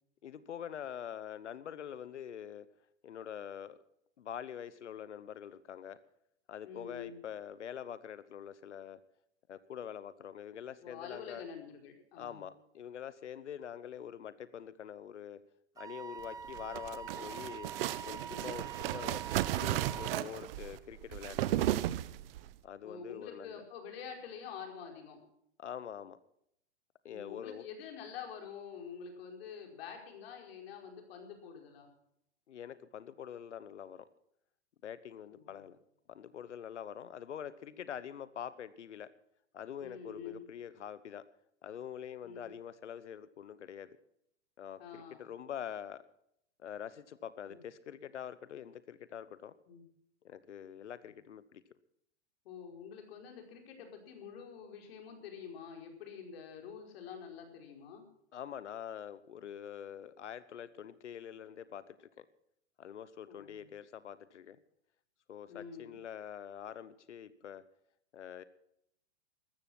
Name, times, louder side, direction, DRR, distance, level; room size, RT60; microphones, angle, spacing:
voice 1, 0.2-2.7 3.0-3.8 4.2-6.0 6.5-9.0 9.5-11.4 12.2-15.4 15.8-17.7 18.0-19.2 19.5-21.8 22.6-23.6 25.6-26.2 27.0-27.7 32.5-34.1 34.8-35.8 36.1-39.1 39.5-41.3 41.6-44.0 44.6-46.0 46.6-49.5 50.2-51.6 58.3-62.3 62.8-64.6 65.3-67.6 68.1-68.4, left 9 dB, 85° left, 16 dB, 1.0 m, -45 dB
voice 2, 6.6-7.2 10.8-12.5 22.8-25.2 27.1-31.9 35.3-35.7 39.8-40.4 42.2-42.5 44.8-45.2 47.4-47.6 49.7-49.8 52.4-58.0 63.3-63.7 65.5-66.0, left 7 dB, 60° left, 3 dB, 4.9 m, -47 dB
Wind instrument woodwind instrument, 15.8-20.2, right 7 dB, 10° right, 0.6 m, -45 dB
sound 1, 16.4-22.5, right 14 dB, 55° right, 0.9 m, -35 dB
14.5 x 12.5 x 6.0 m, 0.73 s
hypercardioid pair, 120°, 34 cm